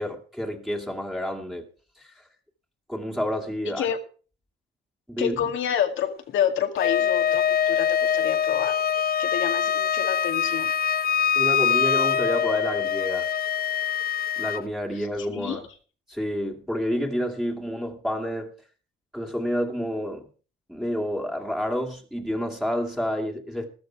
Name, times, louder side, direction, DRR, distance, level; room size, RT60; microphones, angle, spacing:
voice 1, 0.0-1.7 2.0-2.2 2.9-3.9 5.1-5.4 9.2-9.3 11.4-13.3 14.4-15.6 16.1-18.5 19.1-20.3 20.7-23.7, equal, ahead, 2.4 m, -29 dB
voice 2, 5.2-8.7 9.2-10.7 14.9-15.1 15.3-15.6, left 9 dB, 75° left, 2.1 m, -28 dB
Wind instrument woodwind instrument, 6.8-14.6, left 8 dB, 50° left, 0.6 m, -24 dB
13.5 x 13.0 x 4.7 m
cardioid pair, 90°, 20 cm